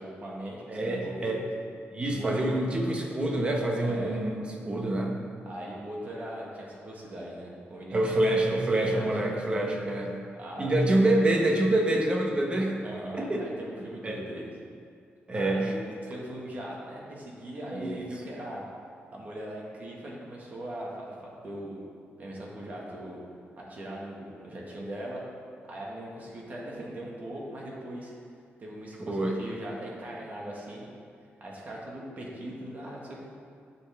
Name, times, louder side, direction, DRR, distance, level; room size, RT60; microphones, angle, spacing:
voice 1, 0.0-1.4 2.1-2.5 3.8-4.2 5.4-8.2 8.9-9.1 10.4-11.0 12.8-14.5 15.3-15.7 16.0-18.6 19.1-21.8 22.2-23.2 23.6-25.2 25.7-28.1 28.6-30.9 31.4-33.2, right 1 dB, 40° right, -3 dB, 1.8 m, -40 dB
voice 2, 0.7-1.4 1.9-5.2 7.9-10.3 10.6-12.8 13.1-13.4 14.0-14.2 15.3-15.7 17.7-18.1 29.0-29.4, right 1 dB, 25° right, 1 dB, 1.1 m, -26 dB
11.0 x 7.3 x 3.6 m, 2.3 s
wide cardioid pair, 150°, 4 cm